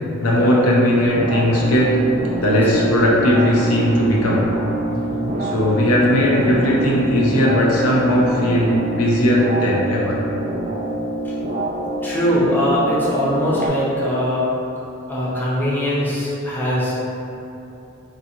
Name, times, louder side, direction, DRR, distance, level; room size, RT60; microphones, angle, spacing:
voice 1, 0.2-2.0 2.4-4.5 5.4-10.2, equal, 80° left, -4 dB, 0.6 m, -17 dB
sound 1, 1.1-13.7, right 2 dB, 35° right, 0.4 m, -26 dB
voice 2, 2.4-2.7 4.9-5.3 11.2-11.3 11.8-14.5 15.1-16.9, equal, 10° left, -8 dB, 0.6 m, -22 dB
3.7 x 2.6 x 2.8 m, 2.8 s
head